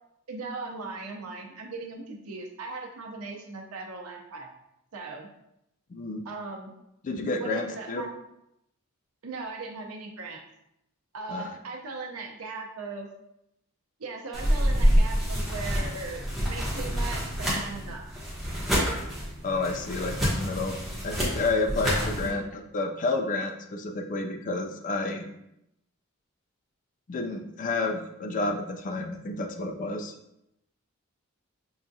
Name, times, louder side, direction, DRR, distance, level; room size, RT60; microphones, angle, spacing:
voice 1, 0.3-4.5 4.9-5.3 6.2-6.7 7.4-8.1 9.2-10.4 11.1-13.1 14.0-18.1 22.2-22.4, right 3 dB, 90° right, 1 dB, 0.7 m, -38 dB
voice 2, 5.9-6.2 7.0-8.0 11.3-11.5 19.4-20.8 21.0-25.2 27.1-30.1, left 3 dB, 35° left, 4 dB, 0.4 m, -30 dB
sound 1, 14.3-22.3, equal, ahead, 0.9 m, -27 dB
5.5 x 2.3 x 2.6 m, 0.82 s
head